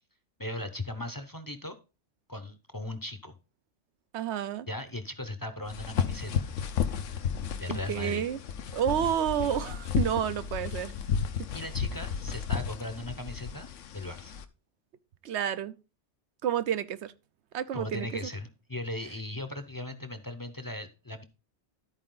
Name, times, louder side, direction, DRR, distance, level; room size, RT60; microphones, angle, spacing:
voice 1, 0.4-1.8 2.3-3.3 4.7-6.5 7.6-8.2 11.5-13.7 13.9-14.3 17.7-21.2, left 1 dB, 25° left, 0.6 m, -38 dB
voice 2, 4.1-4.7 7.7-8.4 8.7-10.9 11.4-11.5 15.2-15.8 16.4-17.1 17.5-18.1, right 9 dB, 70° right, 0.9 m, -30 dB
sound 1, 5.7-14.4, left 7 dB, 80° left, 1.1 m, -33 dB
13.0 x 4.6 x 3.8 m
omnidirectional pair, 1.2 m